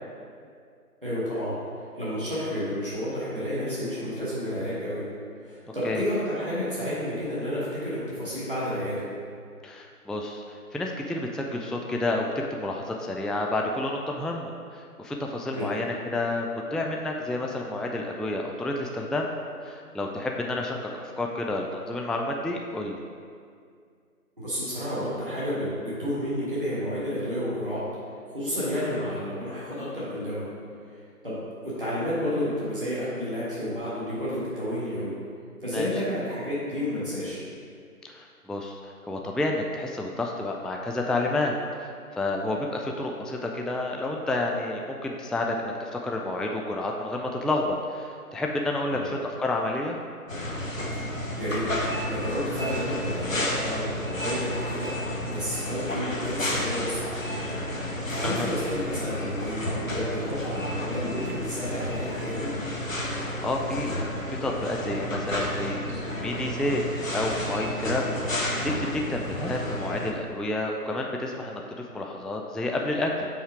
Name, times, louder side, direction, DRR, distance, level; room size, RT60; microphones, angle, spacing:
voice 1, 1.0-1.5 2.0-5.0 5.4-9.0 15.5-15.7 24.4-27.8 28.3-30.4 31.2-35.1 35.6-37.4 48.9-49.1 51.0-51.6 52.1-54.9 55.3-57.5 57.8-62.5, equal, 35° right, -10 dB, 1.4 m, -31 dB
voice 2, 9.6-19.3 19.6-23.0 35.7-35.9 38.0-50.0 58.2-58.5 63.1-64.0 64.3-65.8 66.2-68.2 68.6-71.6 71.9-73.3, left 2 dB, ahead, 1 dB, 0.3 m, -30 dB
sound 1, 50.3-70.1, left 1 dB, 60° left, 0.9 m, -31 dB
5.5 x 4.3 x 4.8 m, 2.2 s
figure-of-eight pair, 180°, 46 cm